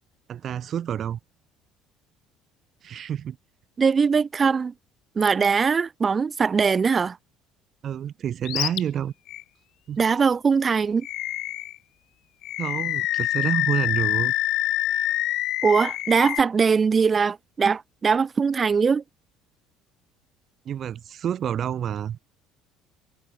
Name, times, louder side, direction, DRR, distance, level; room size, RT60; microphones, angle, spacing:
voice 1, 0.3-1.2 2.8-3.4 7.8-9.1 9.9-10.0 12.6-14.3 20.6-22.2, right 9 dB, 50° right, 6.5 m, -28 dB
voice 2, 3.8-4.7 5.1-7.2 10.0-11.1 15.6-19.0, right 5 dB, 30° right, 3.3 m, -21 dB
Animal, 8.5-8.8 9.3-9.4 11.0-11.8 12.4-16.4, left 15 dB, 65° left, 2.2 m, -26 dB
supercardioid pair, 100°, 0 cm